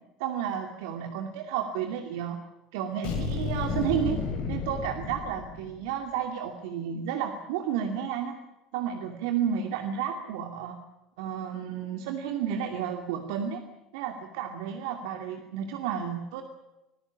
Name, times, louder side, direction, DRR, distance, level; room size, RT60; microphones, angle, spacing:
voice 1, 0.2-2.4 2.7-4.2 4.5-8.4 8.7-10.8 11.2-13.6 13.9-16.4, right 8 dB, 70° right, 5 dB, 2.5 m, -32 dB
sound 1, 3.0-5.8, left 5 dB, 55° left, 7.6 m, -32 dB
26.5 x 19.5 x 7.1 m, 0.95 s
hypercardioid pair, 70°, 2 cm